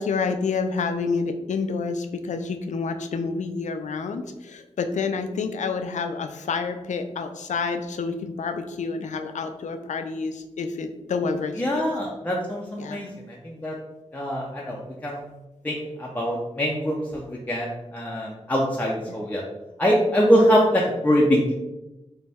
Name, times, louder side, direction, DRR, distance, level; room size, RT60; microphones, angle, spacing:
voice 1, 0.0-11.8 12.8-13.1 19.1-19.2, left 4 dB, 85° left, 7 dB, 0.4 m, -28 dB
voice 2, 11.6-13.1 13.4-13.7 14.1-15.2 15.6-19.4 19.8-21.5, equal, 15° left, -3 dB, 0.5 m, -23 dB
3.9 x 2.2 x 3.4 m, 1.0 s
cardioid pair, 65°, 12 cm